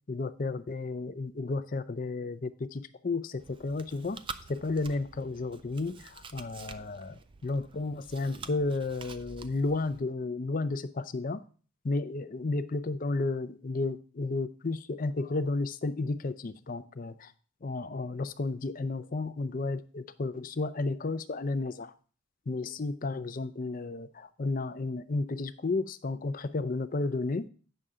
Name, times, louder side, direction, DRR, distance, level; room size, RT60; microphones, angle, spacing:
voice 1, 0.1-4.2 4.5-11.4 11.8-17.3 17.6-21.9 22.5-27.5, left 3 dB, 40° left, 12 dB, 0.5 m, -32 dB
Chewing mastication, 3.4-10.0, right 5 dB, 25° right, 0.4 m, -47 dB
9.0 x 6.7 x 3.7 m, 0.40 s
head